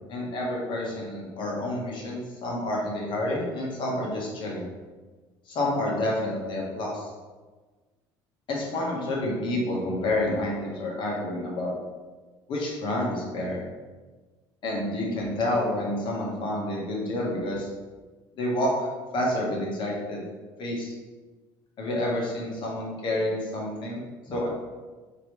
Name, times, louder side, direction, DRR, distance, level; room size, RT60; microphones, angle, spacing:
voice 1, 0.1-4.7 5.5-7.1 8.5-11.7 12.5-13.6 14.6-17.7 18.3-18.9 19.1-20.2 20.6-20.9 21.8-24.5, left 1 dB, 55° left, -3 dB, 1.3 m, -29 dB
4.7 x 3.0 x 3.2 m, 1.3 s
cardioid pair, 105°, 10 cm